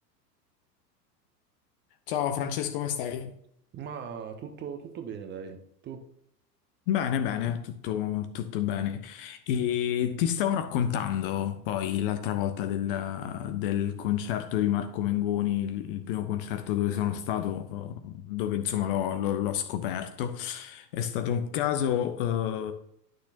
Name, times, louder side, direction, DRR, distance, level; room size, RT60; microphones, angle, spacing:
voice 1, 2.1-3.4 6.9-22.7, left 10 dB, 35° left, 0.7 m, -29 dB
voice 2, 3.7-6.0, right 7 dB, 20° right, 0.9 m, -39 dB
11.5 x 6.3 x 2.9 m
figure-of-eight pair, 90°, 49 cm